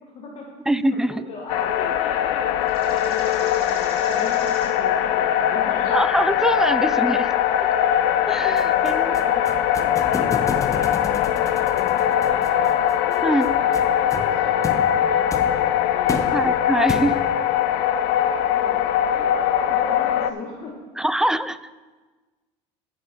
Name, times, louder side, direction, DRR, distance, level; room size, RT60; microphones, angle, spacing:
voice 1, 0.0-0.5 0.9-5.9 8.4-9.4 9.8-12.7 13.0-16.3 17.7-20.8, left 3 dB, 45° left, -1 dB, 1.4 m, -39 dB
voice 2, 0.7-1.2 5.9-7.3 8.3-9.2 13.2-13.5 16.3-17.2 21.0-21.6, right 1 dB, 5° right, 14 dB, 0.4 m, -23 dB
sound 1, 1.5-20.3, left 10 dB, 80° left, 0.5 m, -21 dB
sound 2, 2.6-4.8 5.7-6.1, right 3 dB, 40° right, 3.3 m, -43 dB
sound 3, 8.6-17.4, left 4 dB, 20° left, 0.9 m, -33 dB
13.0 x 6.2 x 4.5 m, 1.3 s
supercardioid pair, 110°, 15 cm